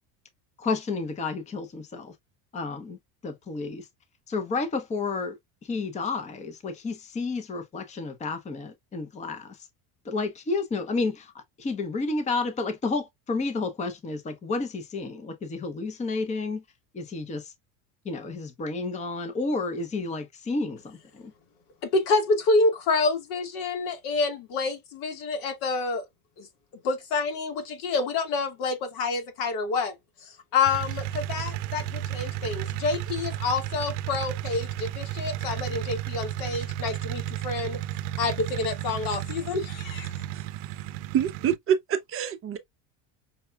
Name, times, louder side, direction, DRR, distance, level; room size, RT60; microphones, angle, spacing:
voice 1, 0.6-2.1 2.5-3.0 3.2-3.9 4.3-5.4 5.6-9.6 10.0-11.3 11.6-16.6 16.9-17.5 18.0-21.3, left 3 dB, 15° left, 0.7 m, -31 dB
voice 2, 21.8-26.0 26.4-26.5 26.8-30.0 30.2-37.8 38.2-40.1, left 3 dB, 75° left, 1.8 m, -28 dB
sound 1, 30.7-41.6, right 13 dB, 75° right, 0.6 m, -33 dB
voice 3, 40.3-40.8 41.1-42.6, right 9 dB, 30° right, 0.6 m, -27 dB
5.6 x 2.3 x 2.2 m
cardioid pair, 140°, 43 cm